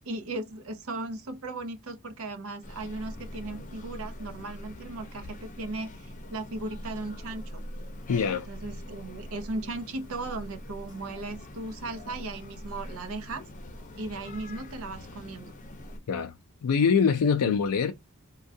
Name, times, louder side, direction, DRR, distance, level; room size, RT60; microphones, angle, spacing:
voice 1, 0.1-7.6 8.3-13.4 14.0-15.5 17.4-17.5, right 2 dB, 65° right, 0.6 m, -37 dB
sound 1, 2.6-16.0, left 1 dB, 35° left, 0.6 m, -43 dB
voice 2, 8.1-8.5 16.1-16.3 16.6-17.9, left 6 dB, 85° left, 0.4 m, -24 dB
3.5 x 2.2 x 2.6 m
head